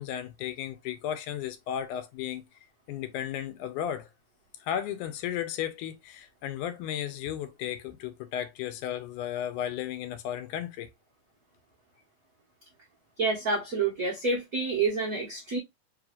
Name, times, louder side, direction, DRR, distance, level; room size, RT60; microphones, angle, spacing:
voice 1, 0.0-2.4 2.9-4.1 4.6-10.9, left 10 dB, 80° left, 2.1 m, -34 dB
voice 2, 13.2-15.6, right 3 dB, 55° right, 1.0 m, -28 dB
4.8 x 3.2 x 2.3 m
omnidirectional pair, 3.7 m